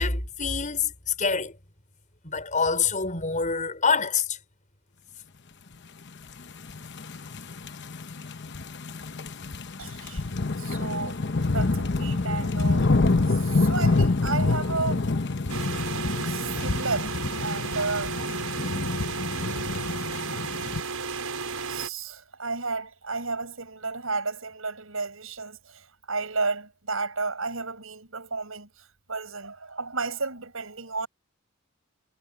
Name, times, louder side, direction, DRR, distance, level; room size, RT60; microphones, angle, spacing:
voice 1, 0.0-1.5 2.2-4.4, left 5 dB, 35° left, 6.0 m, -26 dB
sound 1, 6.5-20.8, left 3 dB, 55° left, 1.0 m, -27 dB
voice 2, 9.8-10.3 10.6-12.9 13.3-15.0 16.2-18.2 19.0-19.1 21.7-31.1, right 3 dB, 70° right, 7.5 m, -32 dB
sound 2, 15.5-21.9, right 5 dB, 85° right, 6.8 m, -33 dB
head